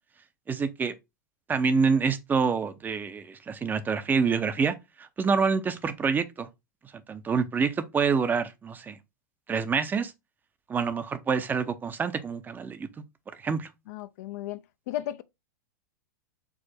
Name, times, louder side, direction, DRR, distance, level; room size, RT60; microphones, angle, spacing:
voice 1, 0.5-0.9 1.5-6.5 7.1-9.0 9.5-10.1 10.7-12.9 13.4-13.7, right 5 dB, 20° right, 0.5 m, -27 dB
voice 2, 13.9-15.2, left 13 dB, 60° left, 0.4 m, -35 dB
4.6 x 2.1 x 4.2 m
hypercardioid pair, 100°, 10 cm